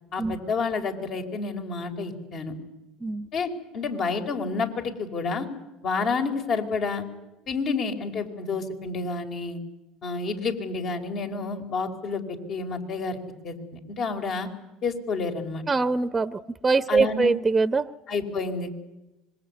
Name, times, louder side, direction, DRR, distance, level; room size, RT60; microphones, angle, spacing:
voice 1, 0.1-2.5 3.3-5.5 5.8-7.0 7.5-9.6 10.0-13.2 13.4-14.5 14.8-15.6 16.9-17.3 18.1-18.8, left 4 dB, 50° left, 5 dB, 4.9 m, -29 dB
voice 2, 15.7-17.9, right 4 dB, 20° right, 13 dB, 0.9 m, -23 dB
25.5 x 22.5 x 9.7 m, 0.99 s
supercardioid pair, 85°, 0 cm